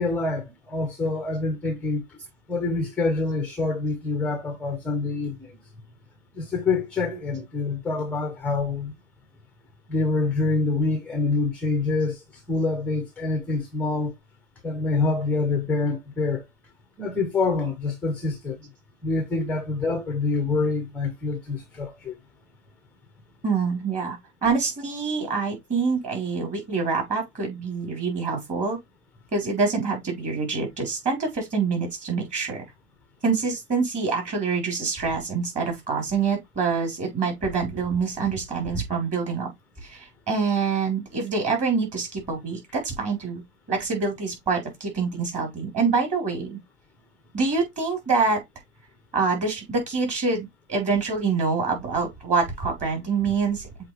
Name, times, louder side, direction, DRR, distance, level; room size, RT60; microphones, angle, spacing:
voice 1, 0.0-2.0 2.5-5.5 6.4-8.9 9.9-12.2 12.5-14.1 14.6-16.4 17.0-18.6 19.0-22.2, left 3 dB, 5° left, 0.6 m, -26 dB
voice 2, 23.4-28.8 29.3-32.6 33.2-39.5 39.8-43.4 43.7-46.6 47.3-48.4 49.1-53.7, right 4 dB, 20° right, 3.8 m, -26 dB
7.5 x 3.8 x 3.3 m
hypercardioid pair, 140°, 36 cm